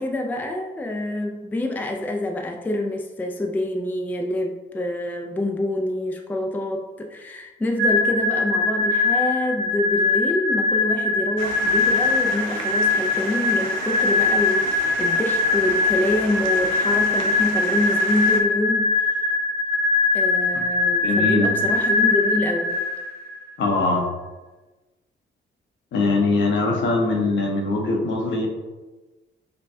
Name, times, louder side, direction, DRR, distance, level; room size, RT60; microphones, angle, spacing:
voice 1, 0.0-18.9 20.1-22.8, left 1 dB, 10° left, 2 dB, 0.4 m, -26 dB
sound 1, 7.8-23.4, left 3 dB, 55° right, 1.0 m, -22 dB
sound 2, 11.4-18.4, right 5 dB, 80° right, 0.5 m, -34 dB
voice 2, 21.0-21.4 23.6-24.1 25.9-28.5, left 3 dB, 70° left, 0 dB, 0.9 m, -21 dB
5.2 x 2.2 x 2.6 m, 1.2 s
cardioid pair, 90°, 20 cm